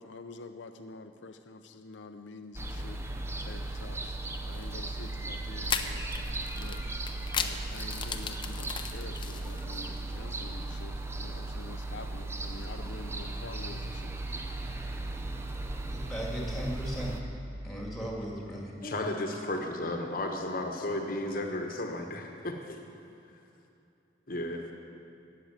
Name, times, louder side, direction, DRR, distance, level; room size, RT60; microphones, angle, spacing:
voice 1, 0.0-3.0 3.4-4.2 4.4-6.1 6.6-6.8 7.3-14.2, left 3 dB, 80° left, 6 dB, 0.6 m, -47 dB
sound 1, 2.5-17.2, right 2 dB, 15° right, 0.7 m, -37 dB
sound 2, 4.5-4.7 5.6-10.0, left 6 dB, 25° left, 0.6 m, -36 dB
voice 2, 15.9-17.1 17.6-18.7, equal, ahead, -2 dB, 2.3 m, -36 dB
voice 3, 18.8-22.8 24.3-24.7, left 1 dB, 50° left, 3 dB, 1.1 m, -34 dB
13.0 x 7.8 x 8.9 m, 2.7 s
head